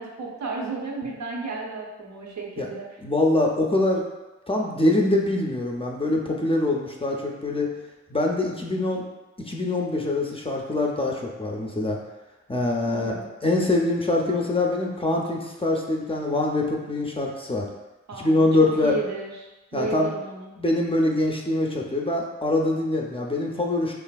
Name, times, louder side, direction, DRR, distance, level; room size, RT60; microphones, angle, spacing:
voice 1, 0.0-2.9 12.9-13.3 18.1-19.4 19.7-20.5, right 3 dB, 70° right, -2 dB, 0.6 m, -33 dB
voice 2, 3.0-4.0 4.5-7.7 8.1-9.1 9.5-12.0 12.5-13.2 13.4-17.7 18.2-19.0 19.7-20.1 20.6-23.9, left 2 dB, 20° left, -1 dB, 0.4 m, -24 dB
3.2 x 2.4 x 2.2 m, 1.1 s
cardioid pair, 55°, 29 cm